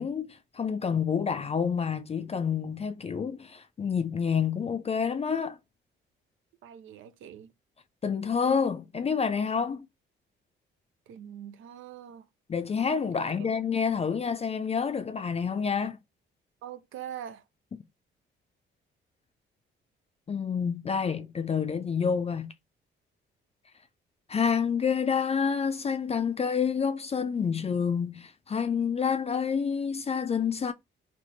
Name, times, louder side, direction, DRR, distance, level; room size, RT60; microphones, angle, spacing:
voice 1, 0.0-5.6 8.0-9.9 12.5-16.0 20.3-22.5 24.3-30.7, left 6 dB, 30° left, 0.5 m, -28 dB
voice 2, 6.6-7.5 11.1-12.3 13.4-13.6 16.6-17.4, right 10 dB, 80° right, 0.7 m, -43 dB
3.5 x 2.8 x 4.0 m
cardioid pair, 90°, 20 cm